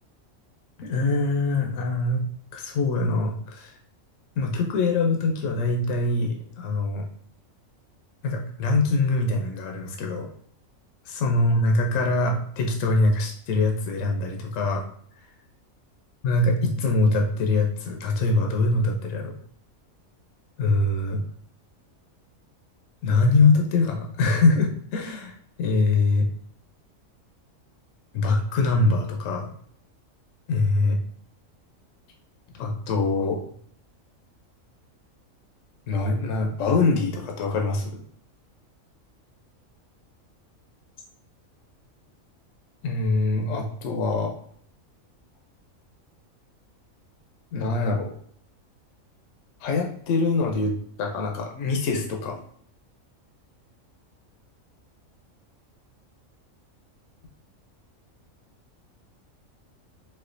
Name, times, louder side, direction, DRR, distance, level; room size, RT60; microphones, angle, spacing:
voice 1, 0.8-2.2 2.5-3.7 4.4-7.1 8.2-10.3 11.1-14.8 16.2-19.3 20.6-21.2 23.0-26.3 28.1-29.5 30.5-31.0 32.6-33.4 35.9-38.0 42.8-44.3 47.5-48.1 49.6-50.7 51.0-52.4, left 3 dB, 70° left, 2 dB, 0.9 m, -23 dB
4.2 x 2.3 x 2.5 m, 0.63 s
omnidirectional pair, 1.4 m